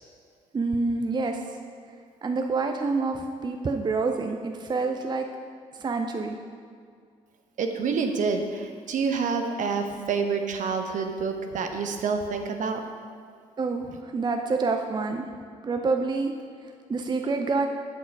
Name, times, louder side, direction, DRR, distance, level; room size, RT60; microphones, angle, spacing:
voice 1, 0.5-1.4 2.2-5.3 5.8-6.4 13.6-15.2 15.6-16.3 16.6-17.7, right 3 dB, 25° right, 5 dB, 0.6 m, -27 dB
voice 2, 7.6-12.8, right 5 dB, 50° right, 5 dB, 0.9 m, -28 dB
7.9 x 6.5 x 4.7 m, 2.2 s
figure-of-eight pair, 45°, 17 cm